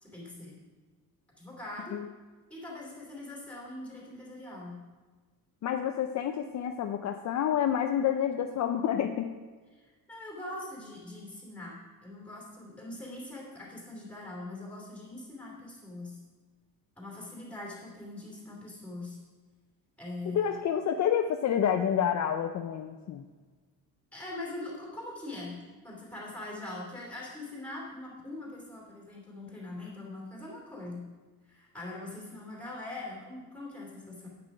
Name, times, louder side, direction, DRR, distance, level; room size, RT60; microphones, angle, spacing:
voice 1, 0.0-0.6 1.4-2.0 2.5-4.8 9.8-16.2 17.0-19.2 20.0-20.5 24.1-25.6 25.8-31.0 31.5-34.3, left 2 dB, 5° left, -3 dB, 2.8 m, -42 dB
voice 2, 5.6-9.3 20.3-23.2, left 9 dB, 50° left, 6 dB, 0.5 m, -28 dB
9.7 x 8.7 x 4.8 m, 1.4 s
cardioid pair, 175°, 38 cm